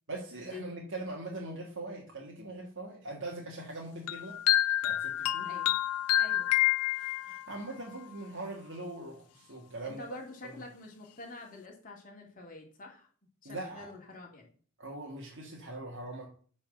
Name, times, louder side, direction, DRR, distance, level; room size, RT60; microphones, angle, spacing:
voice 1, 0.1-4.4 4.8-5.5 6.8-10.1 10.4-10.5 13.4-13.9 14.8-16.3, right 2 dB, 55° right, -2 dB, 1.8 m, -41 dB
sound 1, 4.1-7.6, left 13 dB, 80° left, 0.4 m, -28 dB
voice 2, 6.1-6.5 9.8-13.1 13.4-14.5, left 3 dB, 40° left, 0 dB, 2.5 m, -47 dB
8.8 x 4.3 x 6.3 m, 0.44 s
head